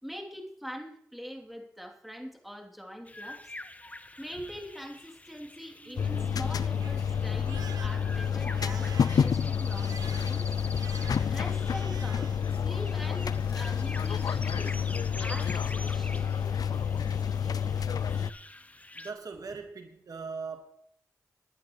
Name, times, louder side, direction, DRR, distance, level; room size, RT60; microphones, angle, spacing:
voice 1, 0.0-3.5 4.2-10.5 11.3-14.8 15.2-16.2, equal, ahead, 2 dB, 3.0 m, -43 dB
sound 1, 3.1-19.1, left 2 dB, 20° left, 0.9 m, -46 dB
Crying sobbing, 5.6-12.6 12.9-13.5, right 7 dB, 90° right, 0.7 m, -50 dB
sound 2, 6.0-18.3, left 7 dB, 70° left, 0.4 m, -29 dB
voice 2, 18.9-20.6, right 4 dB, 65° right, 5 dB, 1.5 m, -39 dB
19.0 x 11.0 x 3.1 m, 0.67 s
cardioid pair, 45°, 7 cm